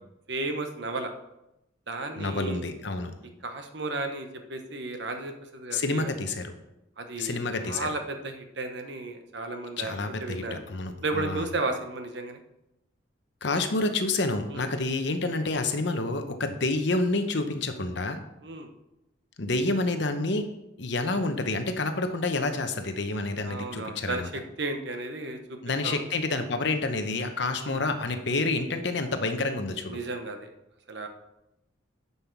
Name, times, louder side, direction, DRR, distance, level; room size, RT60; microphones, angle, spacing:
voice 1, 0.3-1.1 1.9-2.6 3.4-6.1 7.0-7.4 7.6-10.0 10.2-10.6 11.0-12.4 14.5-14.7 18.4-18.7 23.5-25.6 25.8-26.0 27.6-27.8 29.9-30.5 30.9-31.1, right 2 dB, 60° right, 6 dB, 1.0 m, -34 dB
voice 2, 2.2-3.1 5.7-6.5 7.2-7.9 9.8-11.5 13.4-18.2 19.4-20.4 20.8-24.3 25.6-30.0, left 2 dB, 60° left, 7 dB, 0.9 m, -28 dB
10.5 x 5.7 x 4.6 m, 0.89 s
head